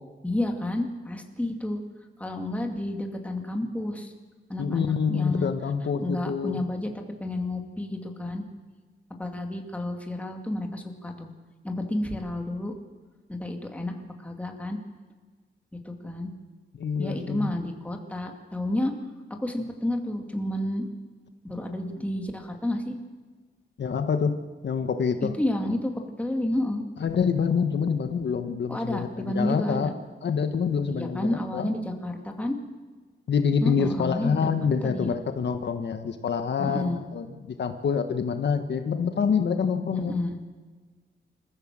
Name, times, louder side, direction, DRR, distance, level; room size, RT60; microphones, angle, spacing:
voice 1, 0.2-1.8 2.2-4.1 4.5-5.5 6.0-6.9 7.2-8.4 9.2-11.3 11.6-12.7 13.3-14.8 15.7-16.3 17.0-18.9 19.3-20.9 21.4-23.0 25.4-26.8 28.7-29.9 30.9-32.6 33.6-34.5 34.8-35.2 36.6-37.0 39.9-40.4, left 1 dB, 5° left, 3 dB, 2.3 m, -30 dB
voice 2, 4.6-6.6 16.8-17.5 23.8-24.3 24.6-25.3 27.0-29.9 30.2-31.7 33.3-40.1, left 6 dB, 65° left, 7 dB, 1.3 m, -26 dB
27.5 x 15.0 x 7.6 m, 1.4 s
wide cardioid pair, 170°, 20 cm